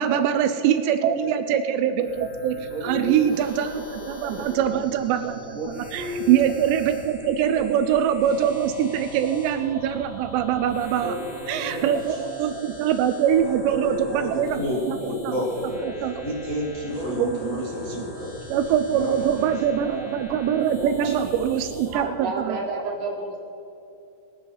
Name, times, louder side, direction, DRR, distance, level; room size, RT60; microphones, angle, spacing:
voice 1, 0.0-11.2 11.5-15.4 15.8-16.3 17.1-17.6 18.0-18.1 18.5-22.6, right 9 dB, 80° right, 8 dB, 2.7 m, -23 dB
sound 1, 2.0-22.0, left 1 dB, 20° left, 4.1 m, -42 dB
voice 2, 2.7-3.4 4.3-4.6 5.5-6.3 7.6-7.7 10.9-11.3 11.6-11.9 13.7-14.4 14.9-15.0 15.8-16.4 16.9-17.5 18.3-18.4 20.7-21.2 21.9-23.4, right 1 dB, 55° right, -2 dB, 3.0 m, -33 dB
voice 3, 11.1-12.6 13.4-15.7 16.2-18.4 18.9-19.5, left 1 dB, 60° left, -7 dB, 0.8 m, -32 dB
21.0 x 9.7 x 4.1 m, 2.7 s
omnidirectional pair, 5.2 m